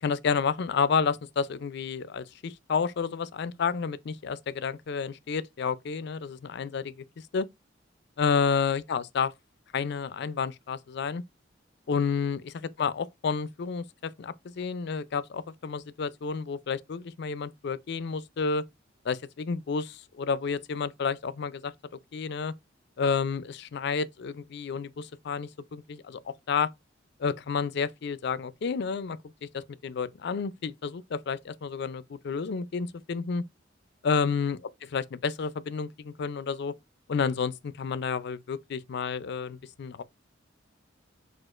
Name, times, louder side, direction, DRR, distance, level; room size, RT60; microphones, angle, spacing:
voice 1, 0.0-7.0 7.3-7.5 8.2-9.3 9.7-11.2 11.9-12.4 12.8-18.6 19.0-21.7 22.1-22.5 23.0-26.7 27.2-33.4 34.0-34.6 34.9-36.7 37.1-40.0, left 5 dB, 60° left, 0.4 m, -30 dB
6.1 x 2.4 x 2.4 m
head